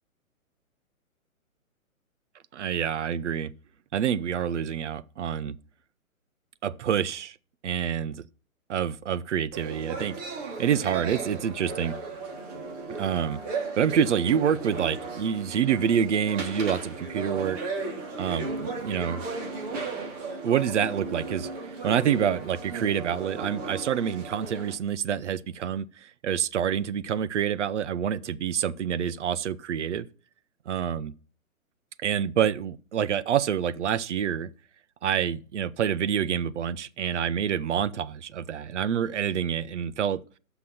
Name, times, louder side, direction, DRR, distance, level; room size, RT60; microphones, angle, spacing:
voice 1, 2.5-3.5 3.9-5.6 6.6-7.4 7.6-8.2 8.7-12.0 13.0-13.4 13.7-17.6 18.2-19.2 20.4-21.5 21.8-30.1 30.7-31.1 32.0-34.5 35.0-40.2, right 8 dB, 55° right, 0.9 m, -27 dB
sound 1, 9.5-24.7, right 3 dB, 25° right, 3.2 m, -35 dB
14.0 x 6.1 x 5.8 m
hypercardioid pair, 150°, 42 cm